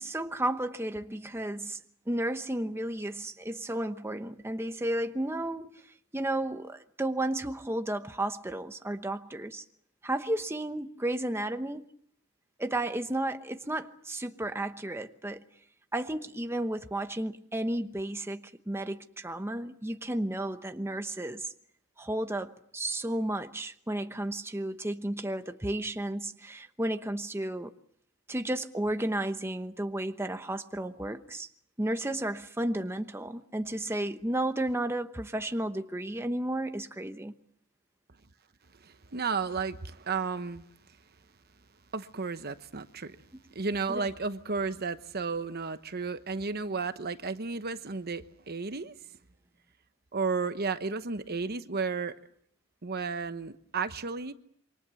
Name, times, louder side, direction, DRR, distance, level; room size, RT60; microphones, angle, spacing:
voice 1, 0.0-1.8 2.1-5.8 6.1-9.6 10.0-11.9 12.6-15.4 15.9-21.5 22.0-27.7 28.3-31.5 31.8-37.3 43.9-44.1, right 1 dB, 10° right, 8 dB, 1.0 m, -33 dB
voice 2, 39.1-40.6 41.9-43.2 43.5-48.9 50.1-52.1 52.8-54.3, right 4 dB, 45° right, 11 dB, 1.0 m, -33 dB
27.5 x 25.0 x 7.0 m, 0.65 s
head